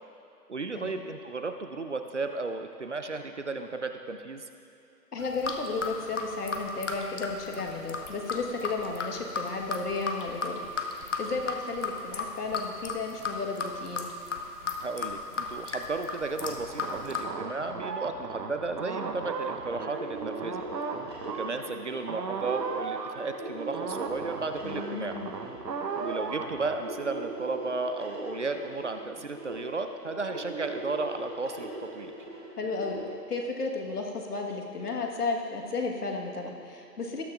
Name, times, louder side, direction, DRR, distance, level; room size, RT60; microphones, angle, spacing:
voice 1, 0.5-4.4 14.8-20.6 21.2-25.2 26.0-32.1, right 3 dB, 45° right, 7 dB, 0.5 m, -34 dB
voice 2, 5.1-10.6 10.9-14.1 24.6-25.4 32.6-33.0 33.3-37.2, left 3 dB, 65° left, 1 dB, 1.5 m, -33 dB
sound 1, 5.2-17.2, left 4 dB, 50° left, 0.8 m, -35 dB
sound 2, 16.4-26.8, right 5 dB, 85° right, 1.1 m, -36 dB
sound 3, 19.4-33.1, right 2 dB, 15° right, 0.9 m, -41 dB
19.0 x 6.5 x 2.4 m, 2.7 s
hypercardioid pair, 170°, 49 cm